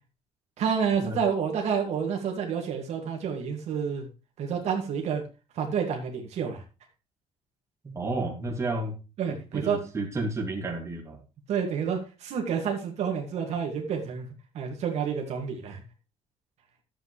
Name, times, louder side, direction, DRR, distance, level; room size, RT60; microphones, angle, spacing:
voice 1, 0.6-4.1 4.4-5.2 5.6-6.6 9.2-9.8 11.5-14.3 14.5-15.8, right 7 dB, 65° right, 2 dB, 2.0 m, -29 dB
voice 2, 7.8-8.9 9.5-11.2, right 2 dB, 25° right, 0 dB, 2.4 m, -31 dB
11.5 x 8.0 x 3.2 m, 0.31 s
cardioid pair, 130°, 12 cm